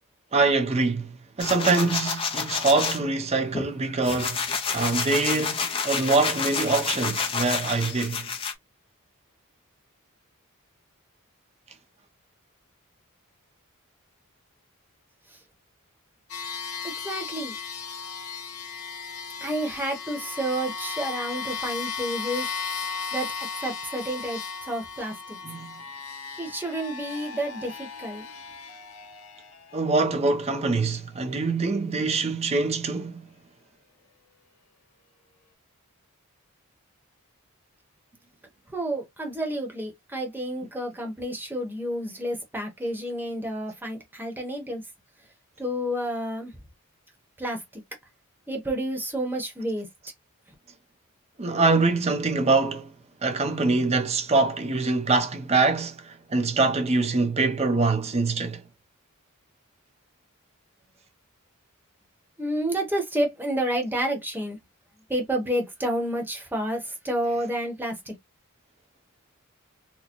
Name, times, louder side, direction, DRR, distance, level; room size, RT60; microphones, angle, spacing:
voice 1, 0.3-8.3 25.4-25.8 29.7-33.3 51.4-52.9 53.2-58.6, right 3 dB, 30° right, 0.6 m, -24 dB
sound 1, 1.4-3.0 3.5-8.5, left 5 dB, 25° left, 0.5 m, -29 dB
sound 2, 16.3-29.9, left 5 dB, 75° left, 0.9 m, -36 dB
voice 2, 16.8-17.6 19.4-22.5 23.1-23.3 23.6-25.4 26.4-28.3 38.7-44.8 45.6-46.5 47.4-47.8 48.5-49.9 62.4-64.6 65.1-68.1, right 1 dB, 10° right, 0.9 m, -30 dB
4.2 x 2.1 x 2.9 m
head